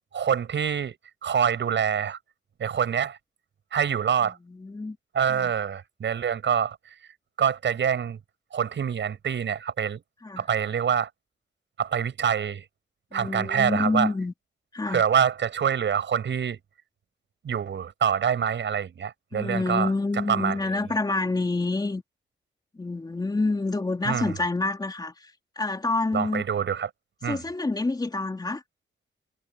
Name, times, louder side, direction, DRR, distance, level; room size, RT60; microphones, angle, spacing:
voice 1, 0.1-1.0 1.2-2.2 2.6-3.2 3.7-4.4 5.1-6.8 7.4-8.2 8.5-10.0 10.4-11.1 11.8-12.6 13.1-14.1 14.9-16.6 17.4-19.9 20.3-20.6 24.0-24.3 26.1-26.9 27.2-27.4, right 8 dB, 80° right, 7.6 m, -25 dB
voice 2, 4.2-5.0 5.3-5.5 10.2-10.4 13.1-14.3 14.7-15.1 19.3-22.0 22.7-26.4 27.2-28.6, left 3 dB, 20° left, 3.3 m, -28 dB
wide cardioid pair, 150°, 19 cm